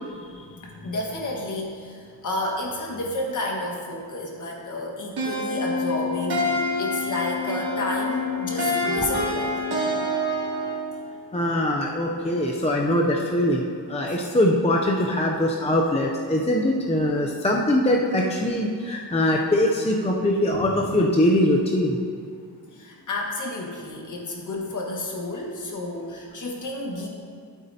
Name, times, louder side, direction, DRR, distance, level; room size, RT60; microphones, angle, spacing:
voice 1, 0.3-9.5 14.1-14.2 20.5-20.8 22.7-27.1, left 2 dB, 45° left, -1 dB, 1.5 m, -31 dB
sound 1, 5.2-10.9, left 1 dB, 70° right, 2.3 m, -26 dB
voice 2, 11.3-22.0, left 1 dB, 15° left, 0 dB, 0.5 m, -22 dB
12.5 x 8.0 x 2.8 m, 2.2 s
wide cardioid pair, 165°, 40 cm